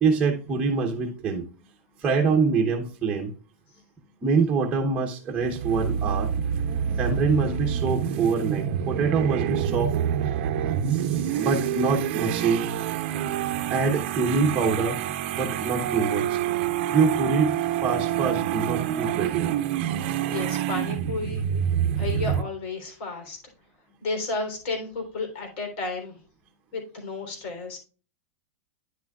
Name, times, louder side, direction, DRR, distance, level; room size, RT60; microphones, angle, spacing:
voice 1, 0.0-1.5 2.0-3.3 4.2-6.3 7.0-9.9 10.9-12.6 13.7-15.0 15.3-16.4 16.9-17.6 17.8-19.5, right 4 dB, 10° right, 1 dB, 0.9 m, -25 dB
sound 1, 5.4-22.4, right 9 dB, 45° right, 0.6 m, -27 dB
voice 2, 20.3-21.4 21.9-23.4 24.0-26.2 26.7-27.8, left 3 dB, 50° left, 4 dB, 3.4 m, -32 dB
10.0 x 6.1 x 2.3 m, 0.37 s
supercardioid pair, 175°, 8 cm